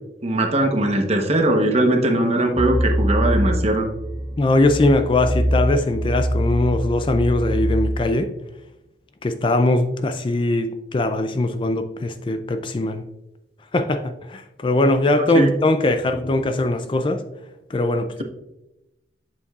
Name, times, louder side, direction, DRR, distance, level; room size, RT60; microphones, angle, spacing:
voice 1, 0.2-3.9 15.2-15.5, right 1 dB, 35° right, 3 dB, 1.0 m, -20 dB
sound 1, 2.6-8.0, equal, 10° right, 1.2 m, -24 dB
voice 2, 4.4-8.3 9.2-13.0 13.7-17.2 17.7-18.2, left 2 dB, 30° left, 8 dB, 0.4 m, -21 dB
8.2 x 7.0 x 2.4 m, 0.94 s
head